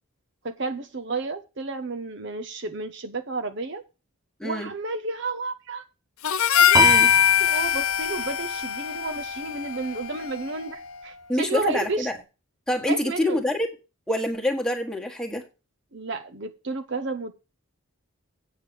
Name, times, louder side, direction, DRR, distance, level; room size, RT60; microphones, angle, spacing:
voice 1, 0.4-3.8 4.4-5.8 6.5-6.8 7.4-12.1 12.9-13.4 15.9-17.3, right 3 dB, 55° right, 7 dB, 0.9 m, -31 dB
voice 2, 4.4-4.7 6.7-7.1 11.3-12.1 12.7-13.7 14.1-15.4, left 1 dB, 5° left, 0 dB, 1.5 m, -26 dB
Harmonica, 6.2-10.7, left 10 dB, 80° left, 0.7 m, -22 dB
Piano, 6.7-9.2, right 4 dB, 15° right, 0.6 m, -27 dB
8.5 x 6.6 x 7.0 m, 0.30 s
head